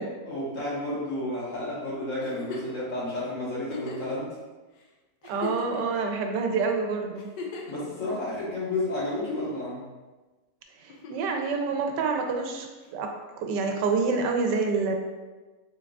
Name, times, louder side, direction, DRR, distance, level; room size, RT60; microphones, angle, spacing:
voice 1, 0.3-4.4 7.7-9.9, left 1 dB, 50° left, -7 dB, 1.5 m, -31 dB
Giggle, 2.2-2.8 3.6-4.1 4.8-4.9 5.2-6.0 7.2-7.8 9.0-9.6 10.9-11.4 12.8-12.9, left 4 dB, 90° left, 1.3 m, -38 dB
voice 2, 5.3-7.3 10.8-14.9, right 4 dB, 85° right, 3 dB, 1.2 m, -27 dB
4.6 x 3.9 x 2.3 m, 1.2 s
omnidirectional pair, 1.8 m